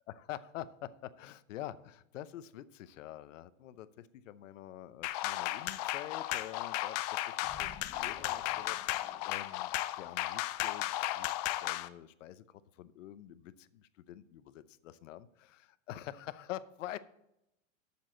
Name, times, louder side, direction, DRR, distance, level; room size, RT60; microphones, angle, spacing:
voice 1, 0.1-17.0, left 12 dB, 65° left, 14 dB, 0.8 m, -47 dB
sound 1, 5.0-11.9, left 16 dB, 30° left, 0.4 m, -35 dB
sound 2, 7.4-9.9, left 3 dB, 15° left, 1.1 m, -54 dB
12.0 x 7.2 x 3.8 m, 0.84 s
hypercardioid pair, 135°, 40 cm